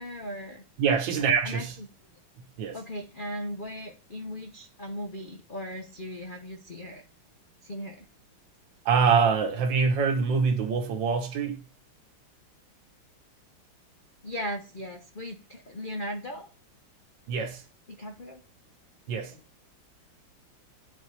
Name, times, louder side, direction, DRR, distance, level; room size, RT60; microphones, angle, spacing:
voice 1, 0.0-0.6 1.4-1.7 2.7-7.0 7.6-8.0 14.2-16.5 17.9-18.4 19.3-19.4, equal, 65° left, 0.5 m, -37 dB
voice 2, 0.8-1.7 2.6-2.8 8.8-11.6 17.3-17.6 19.1-19.3, right 5 dB, 65° right, 1.6 m, -24 dB
10.0 x 4.3 x 3.2 m
omnidirectional pair, 2.2 m